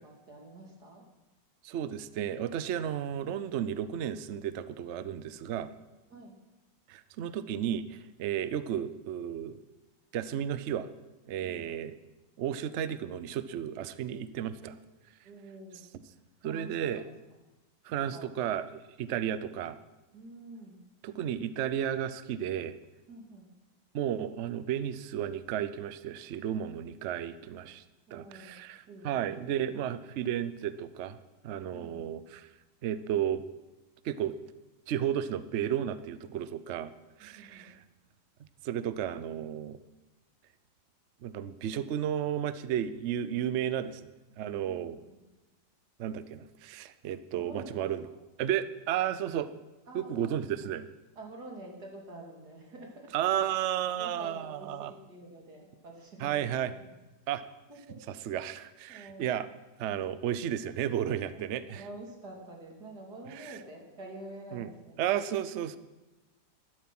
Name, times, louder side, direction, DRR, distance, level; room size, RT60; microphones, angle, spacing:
voice 1, 0.0-1.0 6.1-6.4 11.4-11.7 14.6-14.8 15.2-15.8 16.4-17.1 18.1-18.3 20.1-20.8 23.1-23.5 28.1-28.5 28.9-29.4 31.7-32.1 37.2-37.7 44.7-45.2 47.3-47.9 49.9-50.4 51.2-53.1 54.0-56.6 57.7-58.0 58.9-59.3 61.3-65.1, right 2 dB, 55° right, 0 dB, 3.1 m, -47 dB
voice 2, 1.6-5.7 6.9-9.6 10.1-10.9 11.3-12.0 12.4-14.8 15.9-16.0 16.4-17.0 17.8-19.8 21.0-22.8 23.9-27.8 28.1-31.2 31.4-32.5 32.8-33.4 34.0-34.4 34.9-36.9 37.2-37.8 38.4-39.8 41.2-44.0 44.4-45.0 46.0-48.1 48.4-49.6 49.9-50.9 53.1-54.9 56.2-56.7 57.3-57.4 58.1-59.5 59.8-61.9 63.3-63.6 64.5-64.7 65.0-65.8, right 10 dB, 85° right, 13 dB, 0.6 m, -33 dB
12.5 x 12.0 x 6.0 m, 1.1 s
omnidirectional pair, 2.0 m